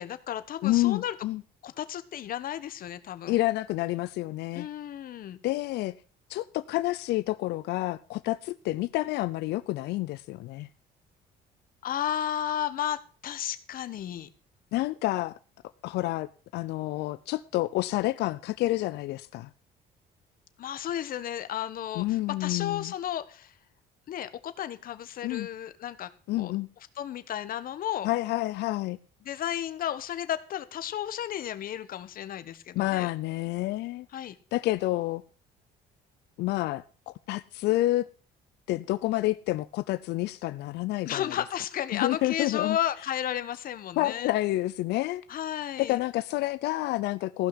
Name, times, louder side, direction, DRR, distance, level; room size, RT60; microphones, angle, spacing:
voice 1, 0.0-1.1 1.6-3.4 4.5-5.4 11.8-14.3 20.6-23.5 24.1-26.5 27.0-28.1 29.2-33.1 34.1-34.3 41.0-44.3 45.3-46.0, left 11 dB, 55° left, 1.3 m, -33 dB
voice 2, 0.6-1.4 3.3-4.7 5.4-5.9 6.3-10.7 14.7-15.3 15.8-16.3 16.5-19.5 21.9-22.9 25.2-25.5 26.3-26.7 28.0-29.0 32.8-34.1 34.5-35.2 36.4-38.1 38.7-41.3 41.9-42.8 44.0-45.2 45.8-47.5, left 17 dB, 80° left, 0.6 m, -29 dB
15.5 x 5.8 x 8.0 m
cardioid pair, 110°, 17 cm